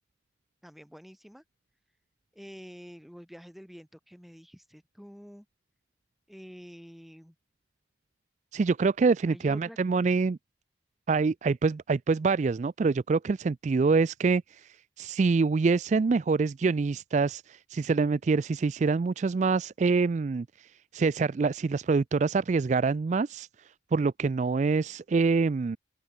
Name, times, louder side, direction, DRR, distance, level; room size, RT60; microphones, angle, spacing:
voice 1, 0.6-1.4 2.3-5.5 6.3-7.3 9.3-9.8, equal, ahead, 2.4 m, -47 dB
voice 2, 8.5-10.4 11.1-23.5 23.9-25.8, right 4 dB, 40° right, 0.3 m, -26 dB
open air
head